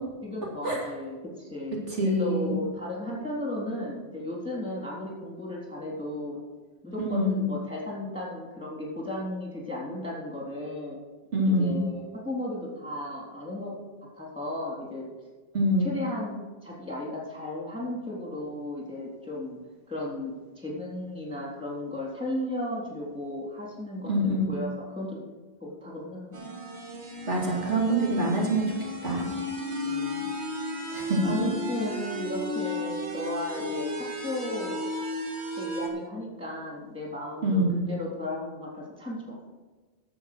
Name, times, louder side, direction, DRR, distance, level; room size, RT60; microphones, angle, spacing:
voice 1, 0.2-6.4 6.8-11.0 11.4-13.8 14.1-15.1 15.8-19.6 19.9-25.2 25.6-26.6 29.8-30.3 31.2-34.0 34.2-34.8 35.6-39.4, left 1 dB, 5° right, -4 dB, 3.6 m, -35 dB
voice 2, 2.0-2.5 7.0-7.4 11.3-11.8 15.5-15.9 24.1-24.5 27.3-28.7 29.0-29.3 30.9-31.4 37.4-37.9, right 1 dB, 90° right, -3 dB, 3.0 m, -25 dB
sound 1, 26.3-35.9, left 1 dB, 70° right, 1.9 m, -34 dB
11.5 x 7.6 x 6.3 m, 1.3 s
omnidirectional pair, 1.2 m